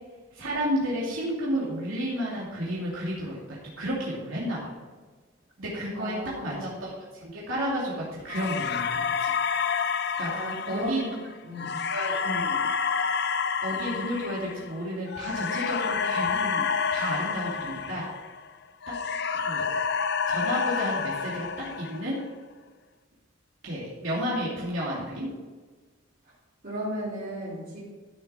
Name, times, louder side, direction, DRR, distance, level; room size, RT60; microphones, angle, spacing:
voice 1, 0.3-4.6 5.6-6.1 6.4-9.3 10.2-11.1 11.9-12.7 13.6-16.6 16.9-18.0 18.9-19.0 19.3-19.7 20.3-22.2 23.6-25.3, equal, 85° right, -7 dB, 3.0 m, -32 dB
voice 2, 6.0-6.6 10.3-11.1 11.4-11.7 26.6-27.8, right 1 dB, 50° right, -10 dB, 3.4 m, -34 dB
sound 1, 8.3-18.5 18.8-22.2, left 6 dB, 55° left, 0.6 m, -29 dB
13.5 x 6.9 x 4.5 m, 1.4 s
head